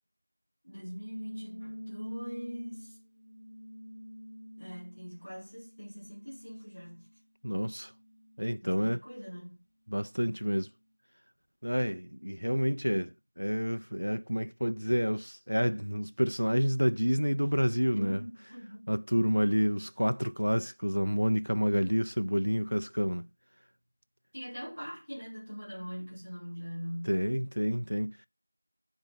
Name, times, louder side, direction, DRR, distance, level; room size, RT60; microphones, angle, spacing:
voice 1, 0.6-3.0 4.6-7.1 8.6-9.6 17.9-18.9 24.3-27.2, equal, 10° left, 5.1 m, -42 dB
sound 1, 1.2-7.2 7.7-9.0, equal, 50° left, 1.8 m, -47 dB
voice 2, 7.4-7.9 8.4-9.0 9.9-10.7 11.6-18.2 18.9-23.3 27.1-28.3, equal, 60° right, 0.4 m, -29 dB
11.0 x 4.4 x 5.3 m
figure-of-eight pair, 180°, 0 cm